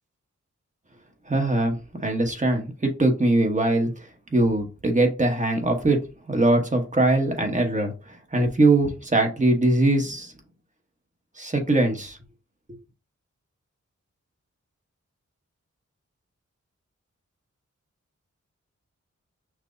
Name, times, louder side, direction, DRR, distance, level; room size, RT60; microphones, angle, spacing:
voice 1, 1.3-1.8 2.0-3.9 4.3-7.9 8.3-10.3 11.4-12.2, right 2 dB, 25° right, 1.0 m, -21 dB
5.8 x 2.0 x 2.6 m
wide cardioid pair, 80°, 29 cm